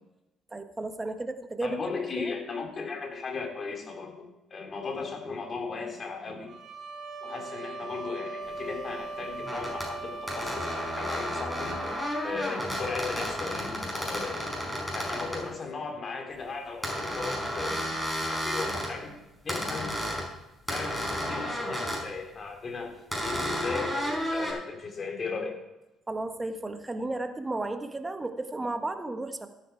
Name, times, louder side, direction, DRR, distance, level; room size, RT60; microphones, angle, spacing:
voice 1, 0.5-1.8 2.2-2.3 15.3-15.5 26.1-29.5, right 2 dB, 20° right, 7 dB, 1.4 m, -33 dB
voice 2, 1.6-4.2 4.5-6.6 7.2-11.8 12.2-14.4 14.9-19.2 19.4-20.0 20.7-25.5, left 4 dB, 40° left, 3 dB, 3.2 m, -36 dB
sound 1, 6.5-12.5, right 3 dB, 45° right, 4.2 m, -39 dB
sound 2, 8.6-8.7 9.4-9.9 10.3-15.4 16.8-18.9 19.5-20.3 20.7-22.0 23.1-24.5, equal, 5° left, 5.7 m, -32 dB
13.5 x 10.0 x 4.6 m, 0.98 s
supercardioid pair, 65°, 0 cm